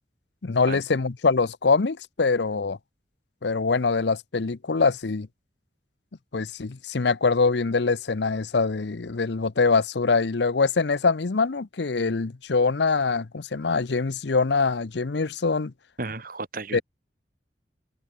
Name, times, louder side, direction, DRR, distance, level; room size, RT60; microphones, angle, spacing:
voice 1, 0.4-2.8 3.4-5.3 6.3-15.7 16.7-16.8, left 4 dB, 70° left, 0.7 m, -24 dB
voice 2, 16.0-16.8, right 3 dB, 50° right, 2.6 m, -33 dB
head